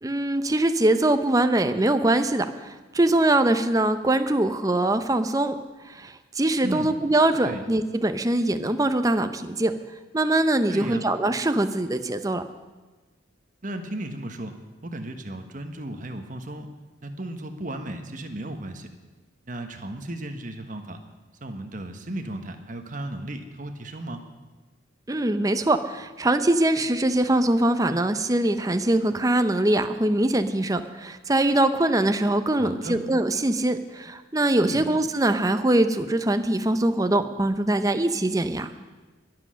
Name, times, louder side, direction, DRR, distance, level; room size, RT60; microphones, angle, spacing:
voice 1, 0.0-5.6 5.8-9.7 10.1-12.4 25.1-38.7, right 1 dB, 20° right, 9 dB, 0.6 m, -23 dB
voice 2, 10.7-11.1 13.6-14.5 14.8-16.7 17.0-18.9 19.5-21.0 21.4-24.2 32.6-33.0 34.6-34.8, right 1 dB, 40° right, 6 dB, 1.2 m, -35 dB
21.5 x 7.8 x 6.4 m, 1.3 s
head